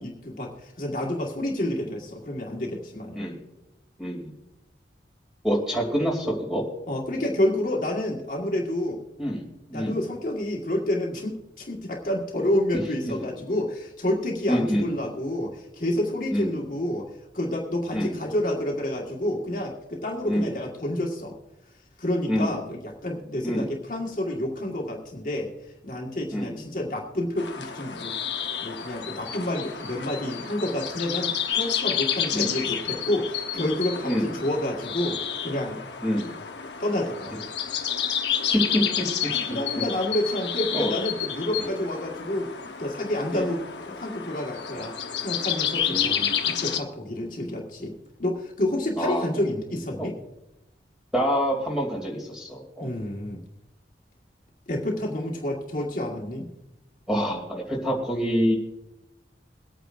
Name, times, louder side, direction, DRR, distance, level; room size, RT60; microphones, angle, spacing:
voice 1, 0.0-3.2 6.9-9.0 9.7-21.4 22.0-25.5 25.8-28.1 28.6-35.8 36.8-37.5 39.3-42.5 42.8-46.2 46.4-50.1 52.8-53.4 54.7-56.5, left 1 dB, 45° left, -2 dB, 1.7 m, -29 dB
voice 2, 4.0-4.3 5.4-6.6 9.2-9.4 9.7-10.0 13.0-13.1 14.5-14.9 16.3-16.5 17.9-18.1 20.3-20.5 22.3-22.5 23.4-23.7 26.3-26.6 32.3-32.5 34.0-34.3 36.0-36.3 38.5-39.1 40.7-40.9 41.6-41.7 43.3-43.5 45.8-46.4 49.0-49.3 50.0-50.1 51.1-52.9 57.1-58.6, equal, 5° right, -1 dB, 2.8 m, -26 dB
sound 1, 27.4-46.8, left 8 dB, 80° left, 1.0 m, -30 dB
23.5 x 9.1 x 2.6 m, 0.92 s
head